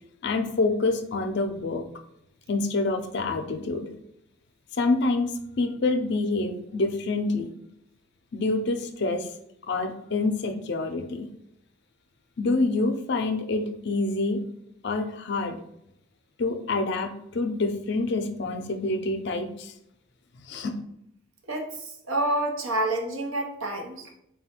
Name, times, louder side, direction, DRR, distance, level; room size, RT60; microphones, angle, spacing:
voice 1, 0.2-1.8 2.5-3.9 4.8-5.3 5.6-7.5 8.3-9.3 9.7-11.3 12.4-14.4 14.8-15.6 16.4-19.7 20.5-20.7, left 3 dB, 55° left, 7 dB, 0.5 m, -27 dB
voice 2, 21.5-24.1, right 1 dB, 90° right, 3 dB, 0.8 m, -28 dB
4.2 x 2.3 x 4.2 m, 0.77 s
head